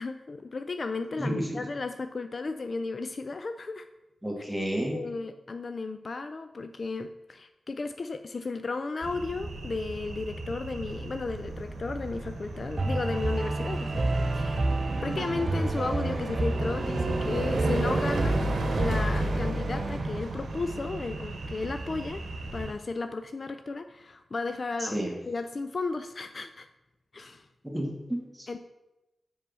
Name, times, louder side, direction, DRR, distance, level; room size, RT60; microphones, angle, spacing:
voice 1, 0.0-3.9 4.9-14.7 15.0-18.5 18.8-22.3 22.5-26.7 27.1-27.5 28.5-28.6, left 3 dB, 55° left, 9 dB, 0.4 m, -34 dB
voice 2, 1.2-1.6 4.2-5.0 24.8-25.2 27.6-28.5, right 1 dB, ahead, 0 dB, 2.1 m, -31 dB
sound 1, 9.0-22.7, right 2 dB, 80° right, 1.0 m, -34 dB
sound 2, 12.8-20.0, right 2 dB, 50° right, 0.7 m, -29 dB
5.6 x 5.4 x 5.4 m, 0.98 s
cardioid pair, 50°, 0 cm